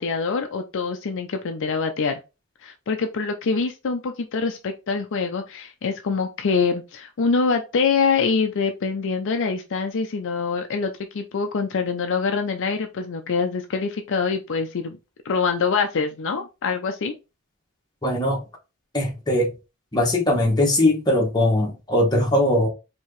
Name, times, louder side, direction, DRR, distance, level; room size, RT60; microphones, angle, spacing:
voice 1, 0.0-2.2 2.6-15.0 15.2-17.1, left 5 dB, 60° left, 0.5 m, -25 dB
voice 2, 18.0-18.4 18.9-19.5 19.9-22.7, left 1 dB, 20° left, 1.2 m, -20 dB
4.5 x 2.9 x 3.1 m
head